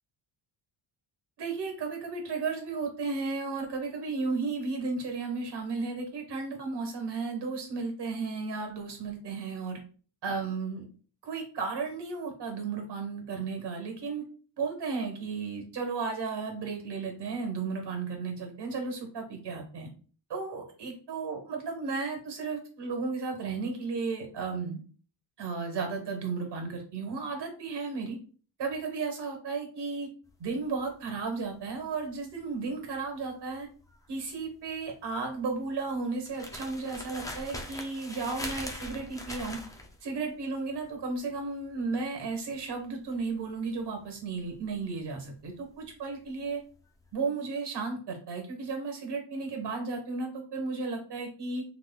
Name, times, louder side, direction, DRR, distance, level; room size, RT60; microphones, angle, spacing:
voice 1, 1.4-9.8 10.2-10.9 11.2-14.2 14.6-19.9 20.3-24.8 25.4-28.2 28.6-30.1 30.4-33.7 34.1-39.6 40.0-46.6 47.1-51.6, right 4 dB, 55° right, 3 dB, 1.3 m, -34 dB
sound 1, 30.3-46.5 46.7-47.1, left 1 dB, 10° left, 0.3 m, -43 dB
3.6 x 3.0 x 2.3 m, 0.40 s
cardioid pair, 115°, 49 cm